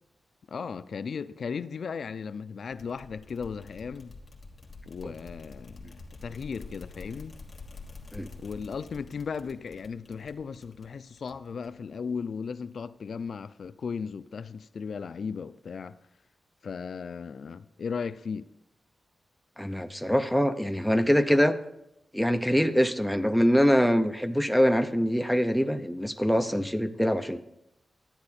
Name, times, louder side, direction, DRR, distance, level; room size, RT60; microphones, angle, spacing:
voice 1, 0.5-4.1 4.9-7.3 8.4-15.9 16.6-18.5, left 6 dB, 60° left, 0.3 m, -36 dB
sound 1, 2.7-11.9, left 3 dB, 30° left, 1.5 m, -47 dB
voice 2, 19.6-21.6 22.1-27.4, equal, ahead, 0.5 m, -24 dB
12.0 x 9.6 x 4.2 m
wide cardioid pair, 160°, 0 cm